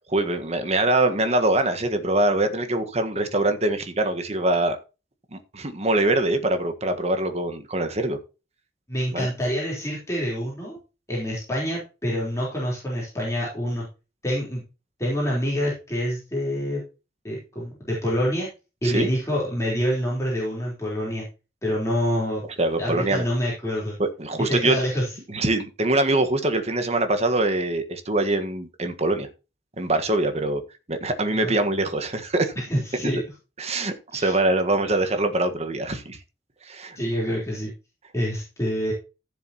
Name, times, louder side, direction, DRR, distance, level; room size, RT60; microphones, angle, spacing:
voice 1, 0.1-4.8 5.3-8.2 9.1-9.3 18.8-19.1 22.6-23.2 24.0-24.8 25.3-29.3 29.8-30.6 30.9-32.5 33.6-36.2 36.6-37.0, right 2 dB, 35° right, 8 dB, 1.5 m, -23 dB
voice 2, 8.9-10.8 11.1-13.9 14.2-14.6 15.0-16.8 17.2-18.5 18.8-21.2 21.6-22.4 22.8-24.0 24.5-25.1 31.4-31.5 32.6-33.2 34.1-34.4 37.0-37.7 38.1-38.9, equal, 15° left, -5 dB, 3.9 m, -26 dB
15.0 x 7.0 x 3.0 m, 0.30 s
head